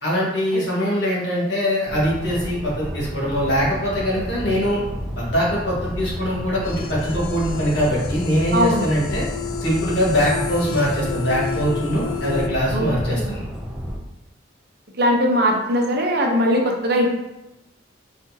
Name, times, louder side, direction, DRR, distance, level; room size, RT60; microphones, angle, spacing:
voice 1, 0.0-4.8 5.2-9.3 9.6-13.4, equal, 60° left, -5 dB, 1.4 m, -22 dB
sound 1, 1.9-14.0, equal, ahead, 0.4 m, -31 dB
sound 2, 6.6-12.5, left 7 dB, 85° left, 0.4 m, -32 dB
voice 2, 8.5-8.9 12.7-13.3 15.0-17.1, equal, 55° right, 1 dB, 0.7 m, -20 dB
4.2 x 3.8 x 2.7 m, 0.96 s
head